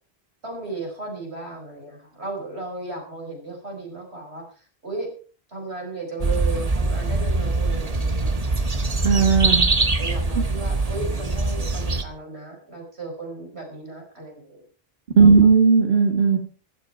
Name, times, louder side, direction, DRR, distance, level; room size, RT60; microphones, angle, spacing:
voice 1, 0.4-5.1 5.5-8.6 10.0-14.6 15.2-15.5, right 3 dB, 85° right, 2 dB, 5.9 m, -35 dB
sound 1, 6.2-12.0, right 3 dB, 35° right, 1.5 m, -23 dB
voice 2, 9.0-9.6 10.4-10.5 15.2-16.4, right 5 dB, 65° right, 3 dB, 1.9 m, -16 dB
15.0 x 13.0 x 4.5 m, 0.38 s
omnidirectional pair, 1.1 m